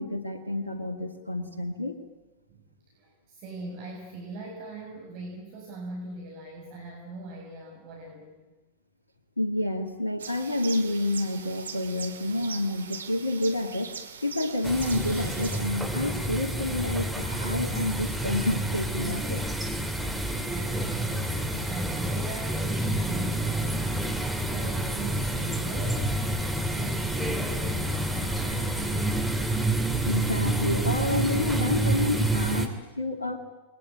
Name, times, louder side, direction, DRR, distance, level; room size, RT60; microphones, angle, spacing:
voice 1, 0.0-2.0 9.4-13.9 14.2-19.4 30.0-33.4, left 1 dB, 80° left, 4 dB, 2.3 m, -29 dB
voice 2, 3.0-8.5 20.4-26.1 26.6-29.0, right 2 dB, 45° right, 0 dB, 6.6 m, -41 dB
sound 1, 10.2-15.6, right 6 dB, 70° right, 2.3 m, -41 dB
sound 2, 14.6-32.7, right 1 dB, ahead, 3.1 m, -28 dB
29.0 x 22.5 x 8.9 m, 1.1 s
figure-of-eight pair, 90°, 0 cm